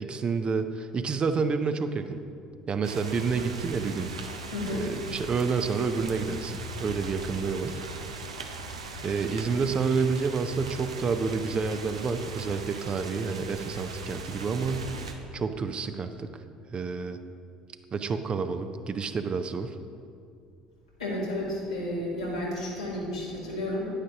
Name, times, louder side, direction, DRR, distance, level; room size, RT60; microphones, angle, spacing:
voice 1, 0.0-2.2 2.7-4.1 4.7-7.8 9.0-14.9 15.3-16.3 16.7-17.2 17.9-19.8, right 5 dB, 35° right, 9 dB, 0.6 m, -29 dB
sound 1, 2.8-15.1, right 3 dB, 80° right, 0.6 m, -39 dB
voice 2, 4.5-4.9 21.0-23.9, left 1 dB, 85° left, -7 dB, 2.3 m, -32 dB
10.0 x 9.9 x 2.9 m, 2.4 s
figure-of-eight pair, 60°, 3 cm